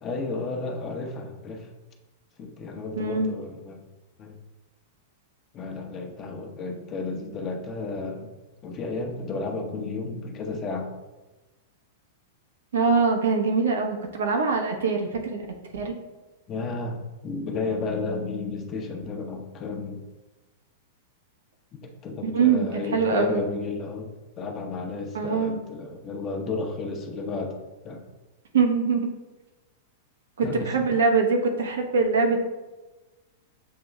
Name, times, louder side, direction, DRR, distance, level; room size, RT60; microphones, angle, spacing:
voice 1, 0.0-1.7 2.4-3.9 4.2-4.3 5.5-8.3 8.6-10.9 16.5-20.0 21.7-24.1 24.4-28.0 30.4-31.0, left 3 dB, 30° left, 3 dB, 0.8 m, -32 dB
voice 2, 3.0-3.3 12.7-15.5 15.7-15.9 22.2-23.4 25.1-25.6 28.5-29.1 30.4-32.4, right 4 dB, 80° right, 3 dB, 0.8 m, -23 dB
7.4 x 3.0 x 2.3 m, 1.1 s
hypercardioid pair, 110°, 0 cm